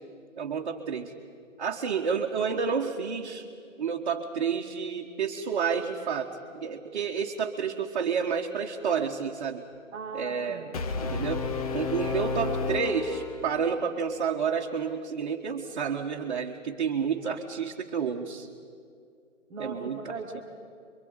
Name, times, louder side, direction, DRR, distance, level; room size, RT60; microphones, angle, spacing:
voice 1, 0.4-1.1 1.6-3.4 3.8-9.6 10.1-10.7 11.1-18.5 19.6-20.0, right 6 dB, 35° right, -1 dB, 1.4 m, -30 dB
voice 2, 9.9-11.2 19.5-20.4, right 4 dB, 5° right, -4 dB, 0.6 m, -39 dB
Brass instrument, 10.7-13.8, left 4 dB, 30° left, 1.1 m, -31 dB
23.5 x 23.5 x 8.0 m, 2.2 s
figure-of-eight pair, 140°, 39 cm